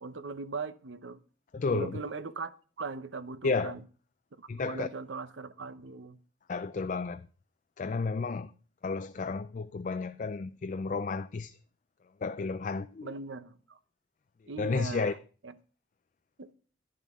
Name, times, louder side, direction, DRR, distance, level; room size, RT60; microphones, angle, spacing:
voice 1, 0.0-1.2 1.7-3.8 4.4-6.2 13.0-13.8 14.5-15.2 15.4-15.5 16.4-16.5, right 4 dB, 85° right, 0.8 m, -39 dB
voice 2, 1.5-2.0 3.4-3.8 4.5-4.9 6.5-7.3 7.8-8.5 8.8-11.6 12.2-13.1 14.6-15.1, left 4 dB, 45° left, 0.4 m, -32 dB
11.0 x 10.0 x 3.6 m
head